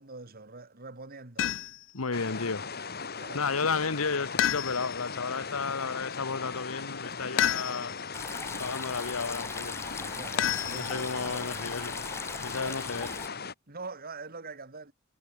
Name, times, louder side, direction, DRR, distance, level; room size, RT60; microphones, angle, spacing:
voice 1, 0.0-1.5 3.2-3.5 10.1-11.7 12.7-12.8 13.7-14.9, right 3 dB, 45° right, 2.4 m, -44 dB
sound 1, 1.4-1.9 4.4-5.1 7.4-8.1 10.4-11.3, left 11 dB, 65° left, 0.5 m, -30 dB
voice 2, 1.9-2.7 3.3-8.0 8.6-9.8 10.7-12.0 12.4-13.2, left 4 dB, 80° left, 1.2 m, -32 dB
sound 2, 2.1-13.5, left 5 dB, 50° left, 3.7 m, -38 dB
sound 3, 8.1-13.3, left 3 dB, 10° left, 0.8 m, -39 dB
head